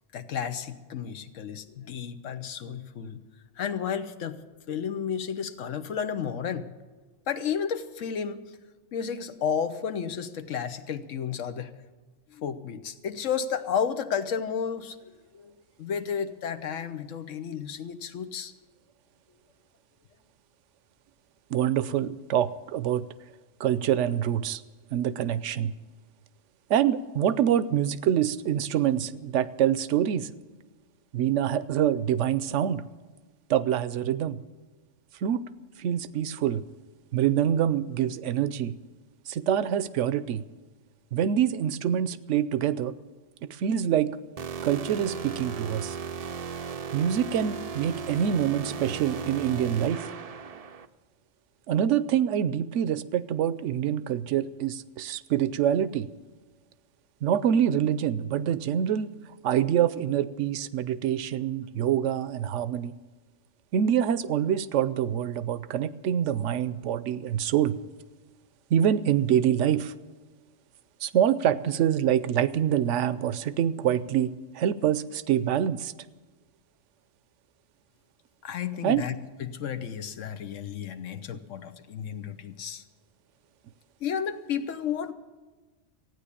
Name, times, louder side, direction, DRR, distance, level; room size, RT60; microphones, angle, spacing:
voice 1, 0.1-3.2 3.6-4.4 4.7-6.7 7.3-8.6 8.9-11.7 12.3-15.5 15.8-18.5 78.4-82.8 84.0-85.1, left 7 dB, 90° left, 10 dB, 1.2 m, -32 dB
voice 2, 21.5-23.0 23.6-24.6 24.9-25.7 26.7-30.3 31.1-32.8 33.5-34.4 35.2-35.4 35.8-36.6 37.1-38.8 39.3-40.4 41.1-42.9 43.4-44.2 44.6-46.0 46.9-50.1 51.7-56.1 57.2-59.1 59.4-62.9 63.7-67.8 68.7-69.9 71.0-75.9 78.8-79.0, right 10 dB, 75° right, 16 dB, 0.9 m, -25 dB
sound 1, 44.4-50.9, right 6 dB, 50° right, 0.4 m, -36 dB
15.0 x 9.4 x 8.4 m, 1.3 s
omnidirectional pair, 1.3 m